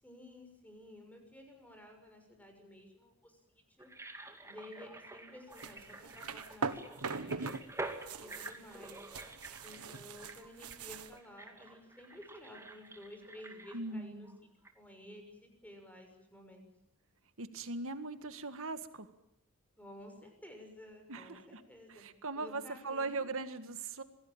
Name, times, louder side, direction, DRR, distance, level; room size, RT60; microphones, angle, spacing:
voice 1, 0.0-3.9 4.4-7.6 8.2-9.1 9.6-14.5 14.7-16.7 19.8-22.0 22.3-23.3, left 1 dB, 5° left, 4 dB, 6.4 m, -53 dB
sound 1, 3.8-14.3 14.6-14.7, right 2 dB, 15° right, 2.4 m, -48 dB
sound 2, 5.5-7.6 7.9-11.2, right 4 dB, 85° right, 1.6 m, -41 dB
voice 2, 13.7-14.4 17.4-19.1 21.1-21.6 21.9-24.0, right 3 dB, 65° right, 10 dB, 1.9 m, -40 dB
26.0 x 18.0 x 8.9 m, 0.86 s
head